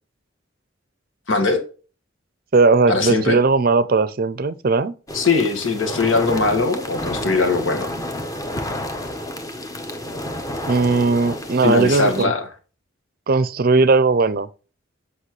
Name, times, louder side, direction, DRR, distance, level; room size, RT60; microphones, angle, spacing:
voice 1, 1.3-1.6 2.9-3.4 5.1-7.9 11.6-12.4, left 3 dB, 85° left, 1.8 m, -20 dB
voice 2, 2.5-4.9 10.7-12.3 13.3-14.5, right 3 dB, 50° right, 0.5 m, -18 dB
sound 1, 5.1-12.2, left 1 dB, 20° left, 1.0 m, -30 dB
8.2 x 5.5 x 3.2 m
head